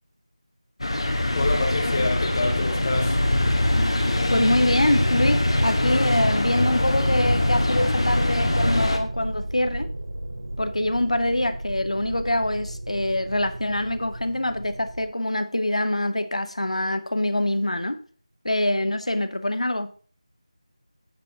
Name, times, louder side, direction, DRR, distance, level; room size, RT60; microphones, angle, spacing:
sound 1, 0.8-9.0, left 1 dB, 60° left, 1.7 m, -22 dB
voice 1, 1.3-3.2, left 2 dB, 25° left, 1.1 m, -27 dB
sound 2, 2.4-15.0, right 1 dB, 55° right, 1.3 m, -35 dB
voice 2, 4.3-9.9 10.6-18.0 18.4-19.9, left 1 dB, 75° left, 1.0 m, -24 dB
9.1 x 8.5 x 2.9 m
figure-of-eight pair, 165°, 3 cm